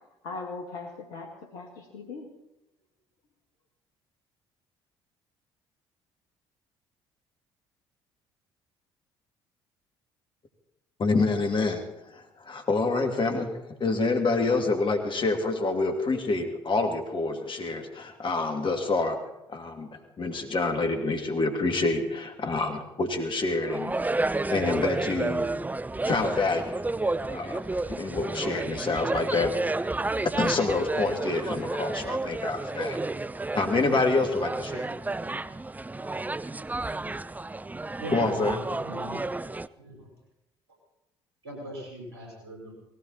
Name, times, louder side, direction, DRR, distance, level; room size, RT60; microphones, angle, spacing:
voice 1, 0.2-2.3, left 3 dB, 70° left, 2 dB, 2.1 m, -39 dB
voice 2, 11.0-11.8 12.1-13.5 13.8-19.2 19.5-19.9 20.2-25.5 26.1-26.7 27.3-29.5 30.4-33.0 33.5-34.9 38.1-38.6, left 3 dB, 40° left, 4 dB, 2.8 m, -27 dB
sound 1, 23.6-39.7, right 2 dB, 10° right, 0.6 m, -31 dB
voice 3, 38.0-39.2 39.8-40.1 41.4-42.7, right 1 dB, 85° right, -1 dB, 5.7 m, -40 dB
18.5 x 17.0 x 4.3 m, 0.92 s
hypercardioid pair, 50°, 13 cm